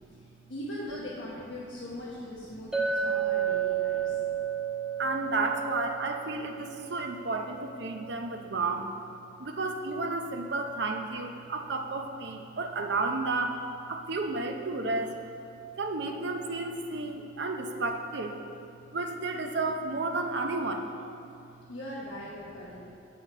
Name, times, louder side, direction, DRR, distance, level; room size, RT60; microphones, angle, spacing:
voice 1, 0.5-4.2 21.7-22.9, left 1 dB, 60° left, -8 dB, 1.1 m, -40 dB
Chink clink, 2.7-7.2, right 8 dB, 5° right, 0.8 m, -31 dB
voice 2, 5.0-8.9 9.4-13.6 13.9-15.1 15.8-18.4 18.9-20.9, right 3 dB, 55° right, 4 dB, 0.6 m, -32 dB
7.5 x 5.8 x 5.4 m, 2.6 s
head